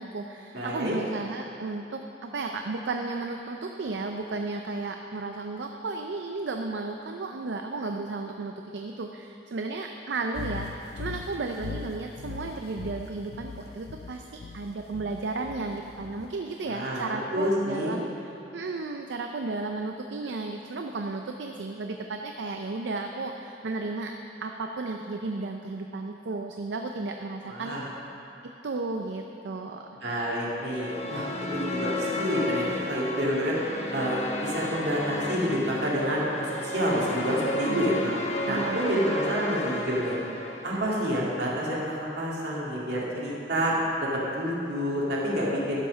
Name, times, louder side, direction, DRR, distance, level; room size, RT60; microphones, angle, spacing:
voice 1, 0.0-18.1 18.5-24.1 24.4-27.8 28.4-29.9 37.6-38.1 38.5-39.2 40.7-41.1, right 3 dB, 90° right, 4 dB, 0.5 m, -34 dB
voice 2, 0.5-0.9 16.6-17.1 17.3-17.9 27.5-27.9 30.0-31.3 31.5-33.5 33.9-38.1 38.5-40.2 40.6-43.7 44.0-45.8, equal, 75° right, -5 dB, 2.2 m, -28 dB
sound 1, 10.3-16.4, left 5 dB, 60° left, 0.4 m, -40 dB
sound 2, 30.6-41.0, left 1 dB, 40° left, 0.9 m, -33 dB
11.5 x 5.6 x 6.4 m, 2.9 s
head